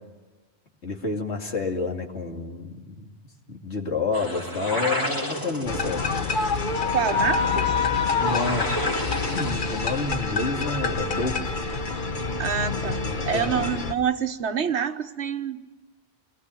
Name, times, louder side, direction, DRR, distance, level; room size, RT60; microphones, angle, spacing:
voice 1, 0.8-3.1 3.5-6.1 8.2-8.7 9.3-11.4 12.8-13.7, left 3 dB, 80° left, 2 dB, 2.9 m, -29 dB
sound 1, 4.1-9.5, equal, 20° left, 2.4 m, -32 dB
sound 2, 5.7-13.9, left 4 dB, 50° left, 1.3 m, -26 dB
voice 2, 6.9-7.7 12.4-13.0 13.3-15.6, right 7 dB, 80° right, 8 dB, 1.5 m, -26 dB
27.5 x 19.5 x 9.8 m, 1.2 s
omnidirectional pair, 1.1 m